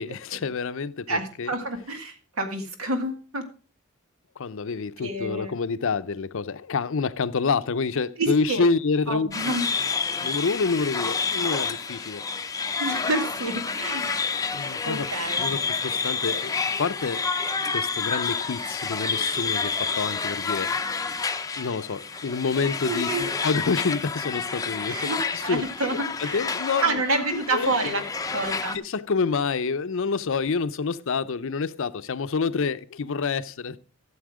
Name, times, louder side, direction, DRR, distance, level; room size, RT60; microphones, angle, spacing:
voice 1, 0.0-1.5 4.4-9.5 10.2-12.2 14.5-15.1 15.4-17.2 17.7-20.7 21.6-25.6 26.2-27.0 27.3-28.0 28.7-33.8, left 4 dB, 65° left, 0.6 m, -28 dB
voice 2, 1.1-3.4 5.0-5.5 8.2-8.7 9.1-9.7 12.8-14.1 14.9-15.5 22.9-23.3 24.9-26.4 26.8-28.0 28.3-28.8, right 2 dB, 90° right, 1.9 m, -28 dB
sound 1, 9.3-28.8, left 5 dB, 15° left, 0.6 m, -29 dB
13.0 x 7.1 x 4.9 m
head